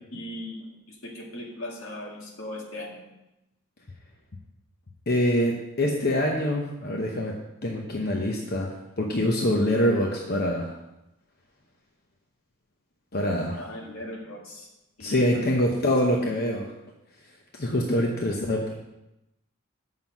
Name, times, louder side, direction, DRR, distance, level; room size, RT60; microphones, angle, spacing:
voice 1, 0.1-0.6 0.9-3.0 13.6-14.7 15.0-15.6, left 1 dB, 75° left, -1 dB, 1.9 m, -38 dB
voice 2, 5.1-7.3 7.6-8.7 9.0-10.7 13.1-13.6 15.0-16.7 17.5-18.7, left 1 dB, 45° left, 0 dB, 0.9 m, -25 dB
7.4 x 5.8 x 6.0 m, 0.93 s
head